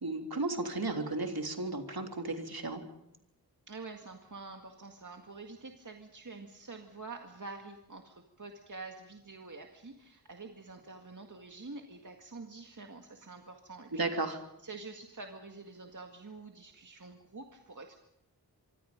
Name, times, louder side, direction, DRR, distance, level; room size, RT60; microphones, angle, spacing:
voice 1, 0.0-2.8 13.9-14.4, right 2 dB, 65° right, 4 dB, 3.3 m, -34 dB
voice 2, 3.7-14.4 14.6-18.0, right 3 dB, 50° right, 3 dB, 2.0 m, -47 dB
26.0 x 24.0 x 5.3 m, 0.82 s
wide cardioid pair, 70°, 39 cm